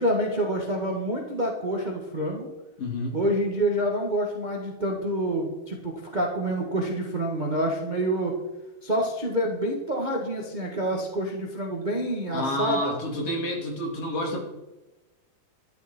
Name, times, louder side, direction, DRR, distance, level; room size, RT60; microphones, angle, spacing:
voice 1, 0.0-2.5 3.1-8.4 8.8-12.9, right 1 dB, 50° right, 0 dB, 0.5 m, -27 dB
voice 2, 2.8-3.2 12.3-14.4, equal, 45° left, 0 dB, 3.5 m, -29 dB
12.5 x 12.5 x 4.4 m, 1.0 s
omnidirectional pair, 3.8 m